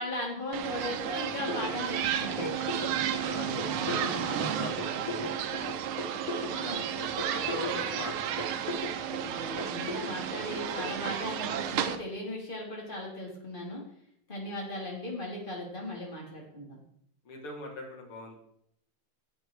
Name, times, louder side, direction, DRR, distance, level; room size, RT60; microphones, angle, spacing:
voice 1, 0.0-2.7 3.6-4.3 6.4-6.9 9.1-13.8 14.3-16.8, left 1 dB, 20° left, -2 dB, 3.0 m, -38 dB
sound 1, 0.5-12.0, right 9 dB, 75° right, 1.6 m, -33 dB
voice 2, 1.4-1.8 2.4-5.3 5.6-5.8 6.5-8.8 17.2-18.4, left 2 dB, 80° left, 1 dB, 3.1 m, -41 dB
sound 2, 1.5-10.9, left 2 dB, 35° left, 2.2 m, -38 dB
10.5 x 7.8 x 4.7 m, 0.71 s
omnidirectional pair, 2.4 m